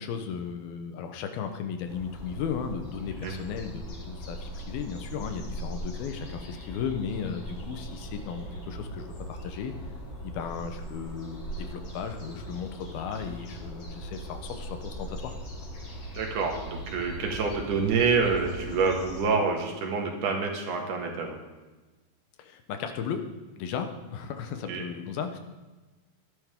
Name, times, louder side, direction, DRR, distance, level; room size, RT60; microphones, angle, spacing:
voice 1, 0.0-9.7 10.2-15.4 22.4-23.2 23.6-25.4, left 7 dB, 80° left, 6 dB, 2.9 m, -35 dB
sound 1, 1.9-19.2, equal, 35° left, 4.8 m, -40 dB
voice 2, 16.1-21.3 24.7-24.8, right 4 dB, 60° right, 1 dB, 3.1 m, -27 dB
16.5 x 11.5 x 3.7 m, 1.2 s
omnidirectional pair, 4.3 m